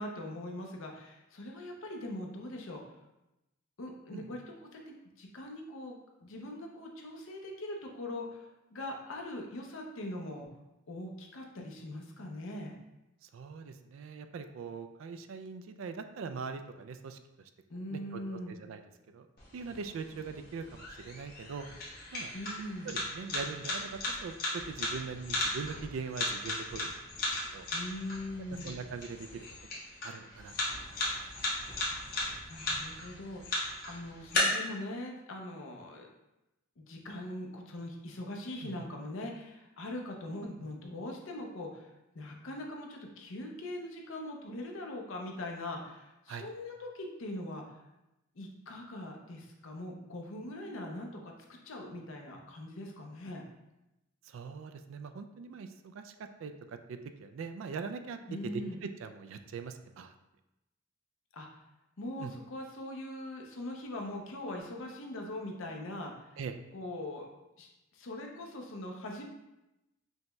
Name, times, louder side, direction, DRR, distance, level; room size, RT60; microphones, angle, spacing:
voice 1, 0.0-2.8 3.8-10.5 10.9-12.8 17.7-18.6 22.3-22.9 27.7-28.8 31.9-32.0 32.5-36.1 36.8-47.8 48.3-53.4 58.3-58.8 61.3-61.5 62.0-66.3 66.7-67.3 67.6-69.2, left 1 dB, 70° left, 1 dB, 0.6 m, -41 dB
voice 2, 13.2-17.2 17.9-18.8 19.1-19.3 19.5-21.7 22.1-22.3 22.8-26.9 27.5-27.7 28.6-29.5 30.0-30.5 38.6-38.8 46.3-46.5 54.3-56.1 56.4-58.2 58.4-60.1 62.2-62.3 66.4-66.5, right 5 dB, 70° right, 8 dB, 0.3 m, -41 dB
sound 1, 19.4-34.4, left 2 dB, 45° left, 1.0 m, -37 dB
5.4 x 2.2 x 3.0 m, 0.94 s
head